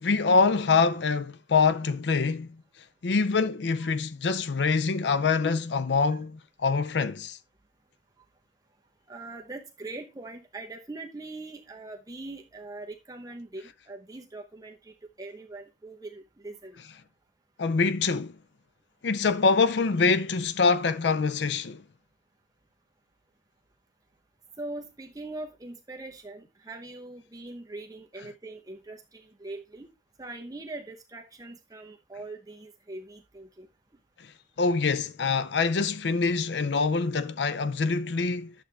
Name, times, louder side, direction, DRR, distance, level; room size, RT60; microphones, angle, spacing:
voice 1, 0.0-2.5 3.0-7.4 17.6-18.3 19.0-21.8 34.6-38.5, left 4 dB, 75° left, 0.5 m, -25 dB
voice 2, 9.1-16.8 24.6-29.9 30.2-33.7, right 2 dB, 20° right, 0.9 m, -42 dB
11.5 x 7.3 x 3.3 m
head